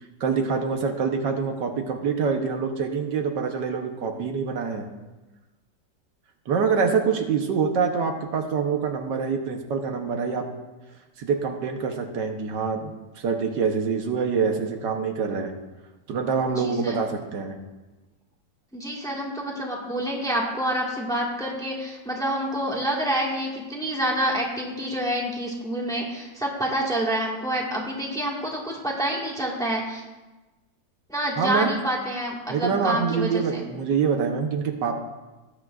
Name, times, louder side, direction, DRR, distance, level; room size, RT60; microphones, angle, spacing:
voice 1, 0.2-4.9 6.5-10.4 11.2-15.5 16.1-17.5 31.4-31.8 32.5-35.0, right 5 dB, 75° right, 4 dB, 1.6 m, -25 dB
voice 2, 16.5-17.0 18.7-30.0 31.1-33.6, right 1 dB, ahead, -3 dB, 1.6 m, -27 dB
18.5 x 8.5 x 2.5 m, 1.1 s
omnidirectional pair, 1.9 m